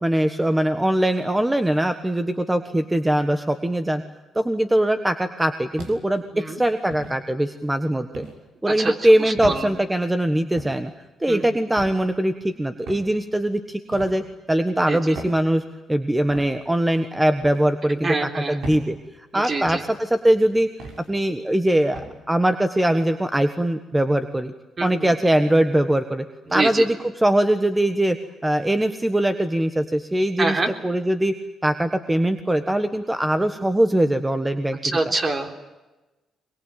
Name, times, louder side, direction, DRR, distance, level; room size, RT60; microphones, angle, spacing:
voice 1, 0.0-4.0 4.3-8.3 8.6-10.9 11.2-15.6 15.9-19.0 19.3-20.7 21.1-22.0 22.3-24.5 24.8-26.2 26.5-31.3 31.6-34.8, right 1 dB, 10° right, 9 dB, 1.5 m, -21 dB
sound 1, 5.8-6.2 6.9-7.2 8.1-8.4 9.4-9.6 10.6-10.8 11.8-12.0 12.9-13.1 13.9-14.2 15.1-15.4 16.3-16.5 17.4-17.6 18.6-18.9 19.7-19.9 20.8-21.1 21.9-22.1, right 1 dB, 75° right, 6.1 m, -36 dB
voice 2, 9.2-9.7 11.3-11.5 14.9-15.0 18.0-18.6 19.3-19.8 24.8-25.1 26.5-26.9 30.4-30.7 34.8-35.6, right 3 dB, 35° right, 5 dB, 3.7 m, -25 dB
23.5 x 22.5 x 9.2 m, 1.1 s
cardioid pair, 90°, 0 cm